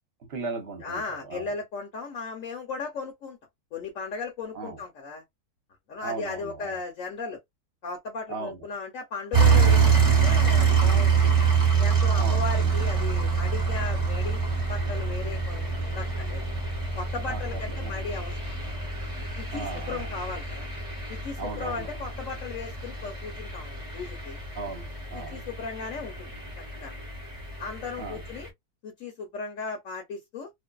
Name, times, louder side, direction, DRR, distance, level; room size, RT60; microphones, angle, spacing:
voice 1, 0.3-1.5 4.5-4.8 6.0-6.8 8.3-8.6 12.2-12.7 17.3-18.0 19.5-20.0 21.4-22.0 24.5-25.4 28.0-28.2, right 4 dB, 50° right, 0.9 m, -37 dB
voice 2, 0.8-3.4 3.7-5.2 5.9-7.4 7.8-11.1 11.8-14.4 14.7-16.4 17.0-18.6 19.4-20.7 21.1-24.4 25.1-26.3 26.8-27.0 27.6-28.5 28.8-30.5, left 4 dB, 65° left, 1.0 m, -36 dB
sound 1, 9.3-28.5, right 5 dB, 25° right, 1.0 m, -26 dB
2.5 x 2.1 x 2.2 m
omnidirectional pair, 1.6 m